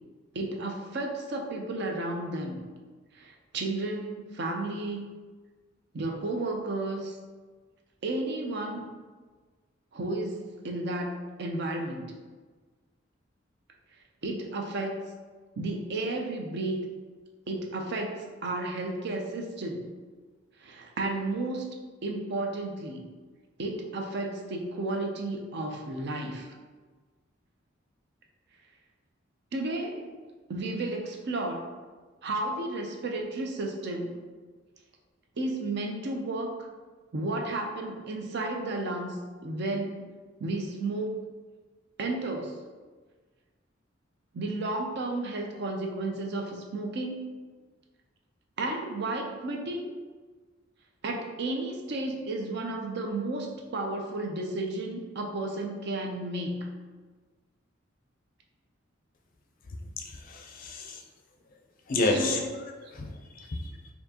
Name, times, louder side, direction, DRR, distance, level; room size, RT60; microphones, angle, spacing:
voice 1, 0.3-2.6 3.1-5.1 5.9-7.2 8.0-8.9 9.9-12.1 14.2-15.0 15.6-16.8 17.5-19.9 20.6-21.7 22.0-23.0 23.6-26.5 29.5-30.1 30.5-31.6 32.2-34.1 35.4-36.7 37.1-39.2 39.4-40.0 40.4-41.1 42.0-42.6 44.3-47.2 48.6-49.9 51.0-56.7 62.0-62.9, right 2 dB, 60° right, 2 dB, 0.5 m, -32 dB
voice 2, 60.0-61.0 61.9-62.4 62.9-63.1 63.4-63.7, left 2 dB, 45° left, 3 dB, 0.4 m, -29 dB
4.3 x 2.7 x 2.8 m, 1.4 s
head